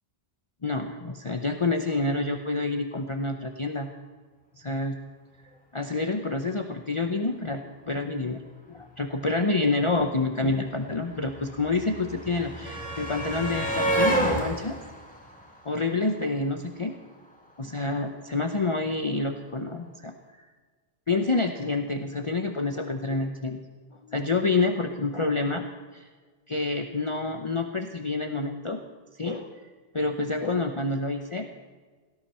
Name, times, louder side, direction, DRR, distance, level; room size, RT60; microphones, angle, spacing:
voice 1, 0.6-3.9 4.6-5.0 5.7-7.6 7.9-8.4 8.7-14.8 15.6-16.9 17.6-20.1 21.1-23.6 24.0-25.6 25.9-26.1 26.5-28.8 29.2-29.5 29.9-31.4, left 3 dB, 30° left, 5 dB, 0.9 m, -28 dB
sound 1, 9.8-9.9 10.1-16.3 17.5-17.6 17.9-18.0, right 1 dB, 5° left, 2.8 m, -30 dB
19.0 x 16.5 x 4.4 m, 1.4 s
omnidirectional pair, 1.1 m